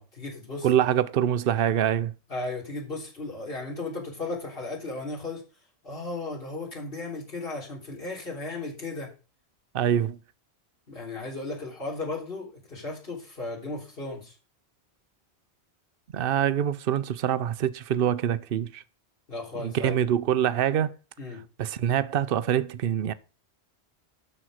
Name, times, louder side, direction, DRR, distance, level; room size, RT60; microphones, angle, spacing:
voice 1, 0.0-0.7 2.3-5.4 5.8-9.1 10.9-14.3 19.3-19.9 21.2-21.4, left 3 dB, 55° left, 3.9 m, -35 dB
voice 2, 0.6-2.1 9.7-10.2 16.1-18.8 19.6-20.9 21.6-23.1, right 10 dB, 60° right, 0.8 m, -25 dB
12.5 x 4.5 x 6.4 m
omnidirectional pair, 1.1 m